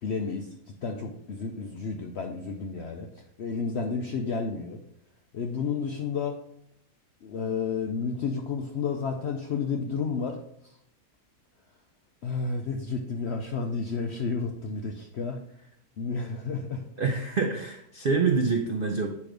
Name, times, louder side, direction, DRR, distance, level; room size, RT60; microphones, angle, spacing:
voice 1, 0.0-3.1 3.4-4.8 5.3-6.4 7.2-10.4 10.6-10.8 12.2-15.4 16.0-16.8, left 5 dB, 65° left, 3 dB, 0.6 m, -31 dB
voice 2, 17.0-19.1, right 4 dB, 70° right, 3 dB, 0.5 m, -26 dB
8.3 x 3.2 x 5.0 m, 0.74 s
omnidirectional pair, 1.7 m